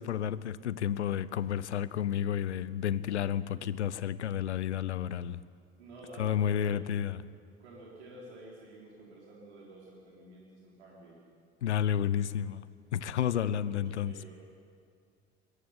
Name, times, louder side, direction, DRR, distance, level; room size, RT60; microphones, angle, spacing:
voice 1, 0.0-5.4 6.2-7.2 11.6-12.7 12.9-14.1, left 9 dB, 80° left, 0.8 m, -31 dB
voice 2, 5.8-7.0 7.6-11.3 12.0-12.3 13.3-14.3, right 2 dB, 75° right, 4.3 m, -51 dB
22.5 x 21.5 x 9.8 m
figure-of-eight pair, 55°, 34 cm